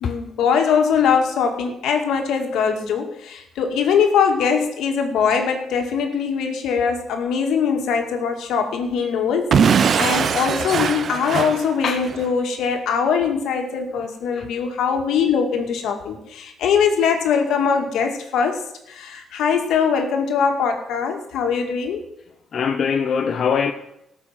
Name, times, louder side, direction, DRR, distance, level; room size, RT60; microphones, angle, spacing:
voice 1, 0.0-22.0, left 6 dB, 80° left, 2.2 m, -22 dB
Explosion / Shatter, 9.5-12.3, right 6 dB, 55° right, 0.8 m, -20 dB
voice 2, 22.5-23.7, left 6 dB, 55° left, 0.9 m, -22 dB
17.0 x 6.9 x 7.6 m
cardioid pair, 90°, 0 cm